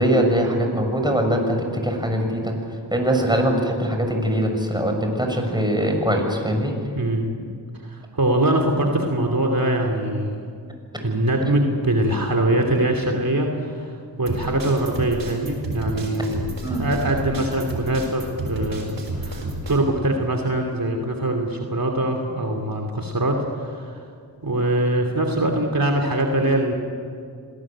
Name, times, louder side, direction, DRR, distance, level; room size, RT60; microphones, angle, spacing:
voice 1, 0.0-2.5 2.9-6.7 16.6-16.8, equal, 10° right, 3 dB, 6.7 m, -22 dB
voice 2, 6.9-7.3 7.7-10.7 11.0-24.1 24.4-26.7, right 1 dB, 50° right, 3 dB, 3.1 m, -23 dB
sound 1, 14.3-19.8, right 1 dB, 90° right, 6.2 m, -31 dB
26.5 x 19.0 x 8.9 m, 2.3 s
cardioid pair, 40°, 43 cm